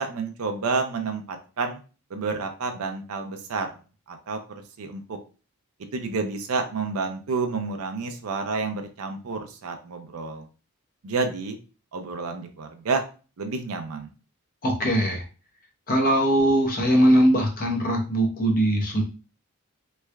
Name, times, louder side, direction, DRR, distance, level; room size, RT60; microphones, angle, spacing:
voice 1, 0.0-1.8 2.1-3.7 4.1-4.4 4.8-5.2 5.9-10.5 11.0-11.6 11.9-13.0 13.4-14.1, right 4 dB, 70° right, 5 dB, 0.5 m, -29 dB
voice 2, 14.6-15.3 15.9-19.0, right 1 dB, 40° left, 1 dB, 0.7 m, -21 dB
3.3 x 3.2 x 2.2 m, 0.35 s
head